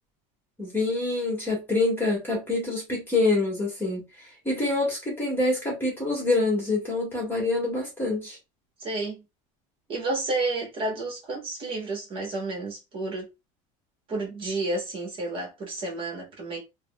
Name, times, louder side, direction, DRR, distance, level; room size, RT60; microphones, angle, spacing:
voice 1, 0.6-8.4, left 2 dB, 15° left, 1.2 m, -26 dB
voice 2, 8.8-9.2 9.9-13.3 14.1-16.6, right 2 dB, 30° right, 1.1 m, -31 dB
3.3 x 2.1 x 2.2 m
cardioid pair, 155°, 16 cm